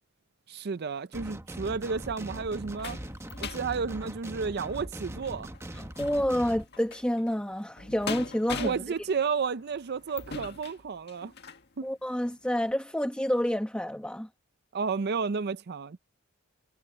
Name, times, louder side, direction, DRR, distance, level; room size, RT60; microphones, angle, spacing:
voice 1, 0.5-3.0 3.4-5.5 8.5-11.3 11.8-11.9 14.7-16.0, right 5 dB, 55° right, 0.5 m, -32 dB
sound 1, 1.1-6.6, right 1 dB, 15° right, 1.2 m, -41 dB
sound 2, 1.8-11.7 12.2-12.3 12.7-12.8, left 5 dB, 55° left, 1.8 m, -43 dB
voice 2, 5.7-8.7 11.8-14.3, equal, 5° left, 1.4 m, -29 dB
head